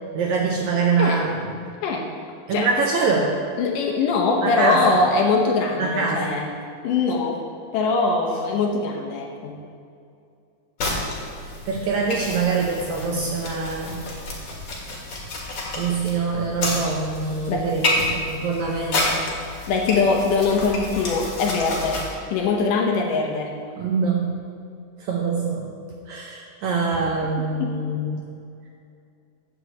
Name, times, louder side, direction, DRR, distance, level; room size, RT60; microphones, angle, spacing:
voice 1, 0.1-1.3 2.5-3.3 4.4-5.0 5.8-6.4 11.7-14.0 15.7-19.3 23.8-24.3 25.0-25.7 26.1-28.2, right 4 dB, 75° right, 0 dB, 1.8 m, -24 dB
voice 2, 3.6-6.5 6.8-7.5 7.7-9.6 17.5-17.7 19.7-23.5 27.6-27.8, left 4 dB, 70° left, 1 dB, 2.4 m, -22 dB
sound 1, 10.8-22.1, left 2 dB, 45° left, 2.4 m, -29 dB
15.0 x 9.3 x 3.0 m, 2.5 s
omnidirectional pair, 4.1 m